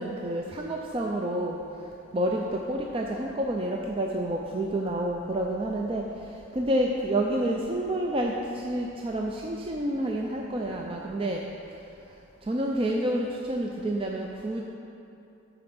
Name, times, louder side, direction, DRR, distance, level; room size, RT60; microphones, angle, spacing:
voice 1, 0.0-1.6 2.1-6.1 6.5-11.4 12.4-14.6, right 1 dB, 30° right, 0 dB, 0.4 m, -29 dB
8.4 x 4.9 x 6.1 m, 2.7 s
head